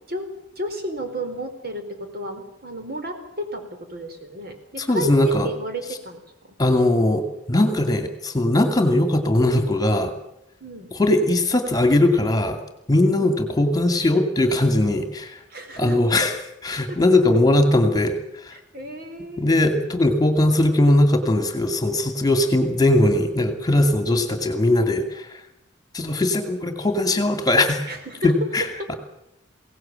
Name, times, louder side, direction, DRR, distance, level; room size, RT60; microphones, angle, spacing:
voice 1, 0.6-5.1 5.4-6.2 6.5-6.6 10.6-10.9 13.1-13.3 15.5-16.0 16.9-17.0 18.5-19.6 22.3-22.4 24.1-24.3 27.9-28.3, right 1 dB, 55° right, 5 dB, 4.5 m, -33 dB
voice 2, 4.8-5.5 6.6-7.2 7.5-10.1 10.9-12.6 12.9-15.4 15.8-16.4 16.6-18.2 18.4-18.5 19.4-25.3 25.9-27.9 28.2-28.9, left 1 dB, 20° left, 7 dB, 2.4 m, -19 dB
23.0 x 17.5 x 8.9 m, 0.85 s
head